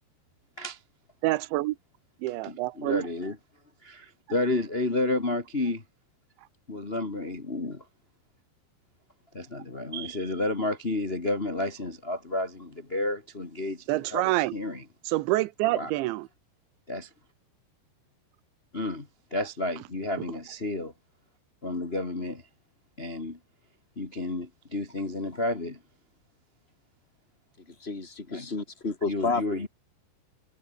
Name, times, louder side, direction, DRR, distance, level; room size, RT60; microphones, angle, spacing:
voice 1, 1.2-1.8 2.2-3.1 13.9-14.5 15.1-16.3, right 18 dB, 90° right, 3.2 m, -27 dB
voice 2, 2.4-3.4 3.8-5.8 6.7-7.8 9.3-14.8 15.7-15.9 16.9-17.1 18.7-20.9 21.6-22.4 23.0-23.4 23.9-25.8 28.3-28.5 29.0-29.7, left 2 dB, 90° left, 0.5 m, -31 dB
voice 3, 27.7-29.7, left 4 dB, 15° left, 3.1 m, -31 dB
omnidirectional pair, 5.1 m